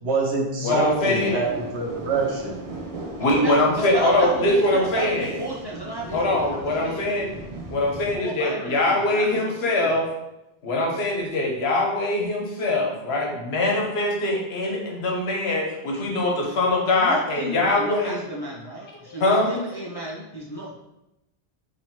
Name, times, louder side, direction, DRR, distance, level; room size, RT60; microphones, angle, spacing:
voice 1, 0.0-2.7, right 3 dB, 90° right, -1 dB, 1.2 m, -25 dB
voice 2, 0.6-1.4 3.2-5.3 6.1-7.3 7.7-10.0 10.6-18.2 19.1-19.5, left 2 dB, 75° left, 0 dB, 1.1 m, -23 dB
sound 1, 0.7-8.2, right 2 dB, 45° right, 0.5 m, -38 dB
voice 3, 3.2-7.1 8.1-10.0 17.0-20.7, right 1 dB, 40° left, -3 dB, 0.3 m, -33 dB
3.1 x 2.9 x 4.3 m, 0.92 s
omnidirectional pair, 1.1 m